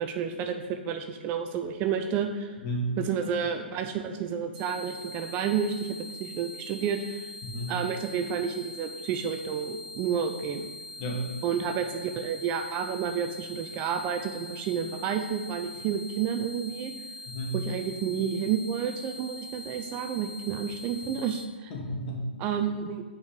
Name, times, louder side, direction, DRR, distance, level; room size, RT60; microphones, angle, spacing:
voice 1, 0.0-2.6 3.0-7.3 7.7-10.7 11.4-16.9 17.5-21.7 22.4-23.0, right 7 dB, 30° right, 6 dB, 0.4 m, -30 dB
voice 2, 2.6-3.0 7.4-7.8 11.0-11.3 17.3-17.6 21.7-22.3, right 1 dB, 40° left, 0 dB, 1.5 m, -32 dB
sound 1, 4.5-21.5, left 1 dB, ahead, 0.7 m, -43 dB
5.2 x 4.8 x 5.2 m, 1.4 s
hypercardioid pair, 125°, 6 cm